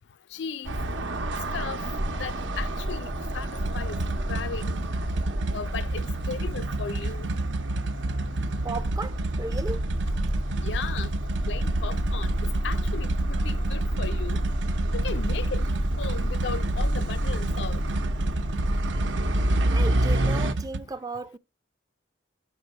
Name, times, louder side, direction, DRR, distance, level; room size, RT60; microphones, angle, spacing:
voice 1, 0.3-0.8 1.5-1.8 2.2-3.5 3.7-4.0 4.3-4.8 5.5-7.3 10.6-11.1 11.5-12.3 12.6-14.4 14.9-15.6 16.0-17.8, left 6 dB, 70° left, 0.4 m, -36 dB
sound 1, 0.6-20.5, right 1 dB, 90° right, 0.9 m, -28 dB
sound 2, 3.6-20.8, right 3 dB, 70° right, 0.5 m, -32 dB
voice 2, 8.6-9.9 19.7-21.4, right 3 dB, 20° right, 0.4 m, -35 dB
6.2 x 5.3 x 4.3 m
head